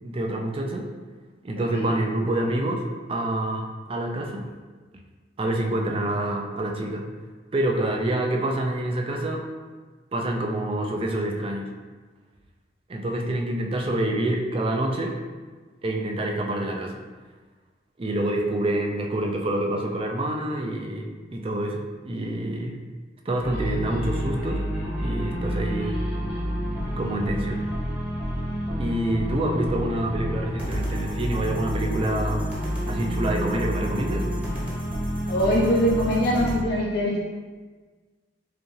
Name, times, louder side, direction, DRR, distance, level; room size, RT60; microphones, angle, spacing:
voice 1, 0.0-0.9 1.4-4.5 5.4-7.1 7.5-9.4 10.1-11.7 12.9-15.2 15.8-17.0 18.0-22.8 23.3-24.6 25.0-26.0 27.0-27.6 28.8-32.4 32.9-34.3, right 1 dB, 30° right, 1 dB, 0.4 m, -27 dB
sound 1, 23.4-36.5, equal, 10° right, 0.9 m, -29 dB
voice 2, 35.3-37.2, equal, 60° left, -3 dB, 0.5 m, -22 dB
4.9 x 2.4 x 3.2 m, 1.4 s
head